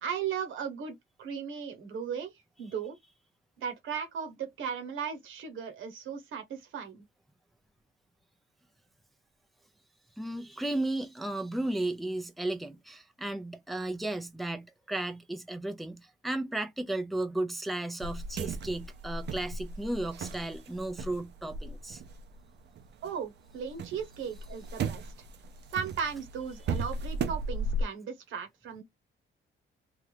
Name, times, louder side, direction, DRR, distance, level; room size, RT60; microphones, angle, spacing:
voice 1, 0.0-2.3 2.6-3.0 3.6-7.1 23.0-25.1 25.7-28.8, right 7 dB, 80° right, 1.1 m, -36 dB
voice 2, 10.2-22.0, right 1 dB, ahead, 0.5 m, -34 dB
sound 1, 18.0-23.1 23.5-27.8, right 3 dB, 60° right, 0.6 m, -36 dB
2.8 x 2.3 x 3.3 m
cardioid pair, 90°, 20 cm